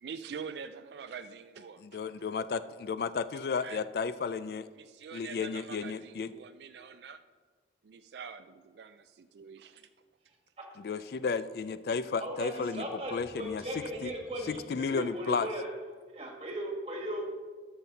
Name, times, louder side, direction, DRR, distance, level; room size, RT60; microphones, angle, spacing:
voice 1, 0.0-2.0 3.6-3.8 4.8-7.2 7.8-9.9, right 6 dB, 70° right, 10 dB, 0.3 m, -45 dB
voice 2, 1.8-4.7 5.1-6.3 10.8-12.9 13.1-14.1 14.5-15.5, left 5 dB, 60° left, 14 dB, 0.3 m, -33 dB
voice 3, 12.2-15.7 16.1-17.4, equal, 35° right, 0 dB, 1.9 m, -37 dB
13.5 x 5.8 x 4.0 m, 1.4 s
head